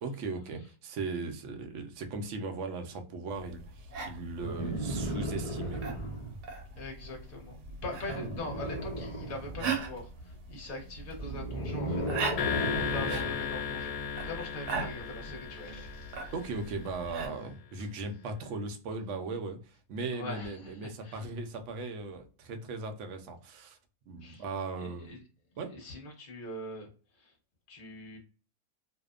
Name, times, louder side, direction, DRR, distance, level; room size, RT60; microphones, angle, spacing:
voice 1, 0.0-6.0 16.3-23.8 24.1-25.1 25.6-25.7, right 3 dB, 70° right, 0.7 m, -38 dB
sound 1, 3.3-17.3, right 4 dB, 90° right, 1.2 m, -40 dB
sound 2, 4.4-6.4 8.0-9.8 11.1-13.4 14.7-14.8, right 1 dB, 65° left, 0.3 m, -35 dB
voice 2, 6.7-7.6 7.8-16.3 20.1-21.3 24.2-24.4 24.8-25.2 25.7-26.9 27.1-27.4 27.7-28.2, left 2 dB, 40° left, 0.9 m, -42 dB
sound 3, 12.4-16.8, left 7 dB, 90° left, 1.1 m, -35 dB
2.7 x 2.0 x 2.3 m
omnidirectional pair, 1.7 m